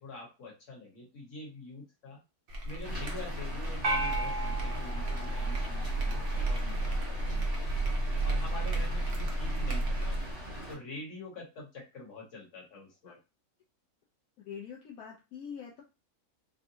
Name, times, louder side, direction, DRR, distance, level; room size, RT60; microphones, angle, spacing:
voice 1, 0.0-2.2 2.6-7.7 8.0-10.2 10.7-13.2, left 2 dB, 55° left, -2 dB, 1.5 m, -46 dB
sound 1, 2.5-10.3, right 2 dB, 50° right, 0.8 m, -32 dB
Rain, 2.8-10.7, equal, 15° right, 1.0 m, -42 dB
sound 2, 3.8-6.3, right 2 dB, 75° right, 1.3 m, -35 dB
voice 2, 14.4-15.8, left 7 dB, 75° left, -3 dB, 1.1 m, -44 dB
3.6 x 2.2 x 2.7 m, 0.27 s
omnidirectional pair, 1.6 m